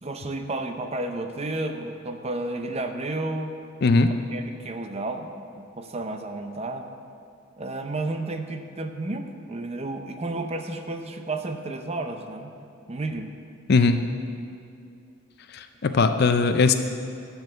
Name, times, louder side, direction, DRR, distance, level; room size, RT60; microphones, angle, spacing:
voice 1, 0.0-3.5 4.1-5.3 5.6-6.9 7.6-12.5 12.9-13.3 16.0-16.1, right 2 dB, 30° right, 6 dB, 0.6 m, -32 dB
voice 2, 13.7-14.0 15.5-16.7, left 4 dB, 50° left, 8 dB, 0.4 m, -19 dB
9.8 x 7.0 x 6.7 m, 2.5 s
head